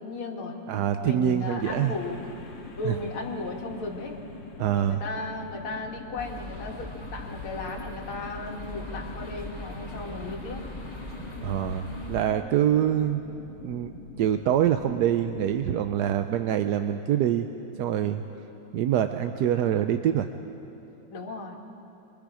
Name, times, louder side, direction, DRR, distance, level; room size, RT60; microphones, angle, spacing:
voice 1, 0.0-0.7 1.0-4.2 4.7-10.7 21.1-21.5, left 2 dB, 85° left, 1 dB, 2.6 m, -36 dB
voice 2, 0.7-1.9 2.8-2.9 4.6-5.0 11.4-13.2 13.6-17.5 17.8-18.2 18.7-20.3, right 10 dB, 70° right, 8 dB, 1.0 m, -25 dB
sound 1, 1.6-15.7, left 4 dB, 65° left, 2.3 m, -44 dB
sound 2, 6.2-12.3, left 1 dB, 20° left, 1.9 m, -40 dB
27.5 x 24.0 x 4.9 m, 2.9 s
omnidirectional pair, 2.3 m